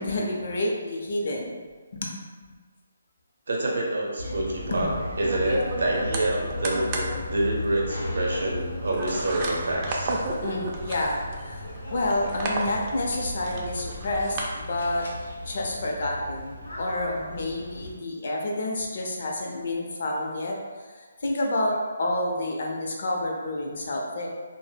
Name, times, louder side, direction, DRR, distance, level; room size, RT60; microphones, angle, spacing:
voice 1, 0.0-1.6 1.9-2.1 4.7-4.9 10.4-15.1 15.4-20.6 21.2-24.3, left 1 dB, 55° left, -1 dB, 0.5 m, -29 dB
voice 2, 3.5-4.9 5.2-10.1, right 1 dB, 70° right, -2 dB, 0.6 m, -27 dB
sound 1, 4.2-18.0, left 1 dB, 90° left, 0.7 m, -36 dB
sound 2, 4.7-14.4, right 2 dB, 25° right, 0.3 m, -33 dB
2.1 x 2.0 x 3.3 m, 1.5 s
hypercardioid pair, 160°, 0 cm